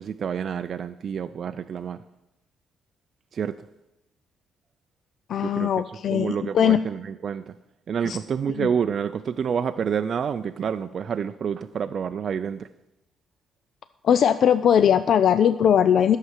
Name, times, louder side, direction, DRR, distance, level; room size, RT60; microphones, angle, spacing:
voice 1, 0.0-2.0 3.3-3.6 5.4-5.7 6.1-7.6 7.9-12.7, right 7 dB, 55° right, 9 dB, 0.4 m, -28 dB
voice 2, 5.3-6.8 8.1-8.2 8.5-8.7 14.0-16.2, left 9 dB, 65° left, 12 dB, 0.4 m, -20 dB
11.5 x 6.6 x 7.5 m, 0.92 s
cardioid pair, 90°, 0 cm